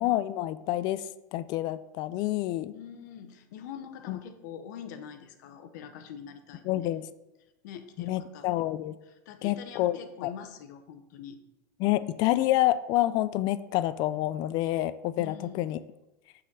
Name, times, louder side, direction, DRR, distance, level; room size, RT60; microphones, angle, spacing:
voice 1, 0.0-1.0 1.3-2.7 4.1-4.2 6.7-7.1 8.0-8.9 9.4-10.3 11.8-15.8, left 15 dB, 45° left, 15 dB, 0.4 m, -28 dB
voice 2, 2.7-6.9 7.6-8.5 9.0-11.4 15.2-15.7, left 8 dB, 70° left, 8 dB, 0.8 m, -44 dB
6.3 x 4.1 x 5.4 m, 0.97 s
supercardioid pair, 135°, 10 cm